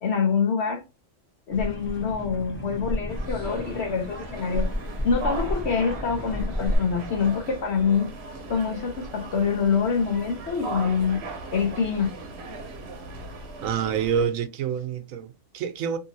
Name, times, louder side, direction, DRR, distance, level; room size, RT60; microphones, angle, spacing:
voice 1, 0.0-0.8 1.5-4.7 5.0-8.1 8.5-11.2 11.5-12.1, left 6 dB, 60° left, 0.9 m, -25 dB
sound 1, 1.5-6.8, left 1 dB, 10° left, 0.6 m, -32 dB
sound 2, 3.1-14.2, right 2 dB, 60° right, 0.9 m, -38 dB
voice 2, 13.6-16.0, right 7 dB, 85° right, 1.0 m, -27 dB
2.7 x 2.7 x 2.7 m
omnidirectional pair, 1.4 m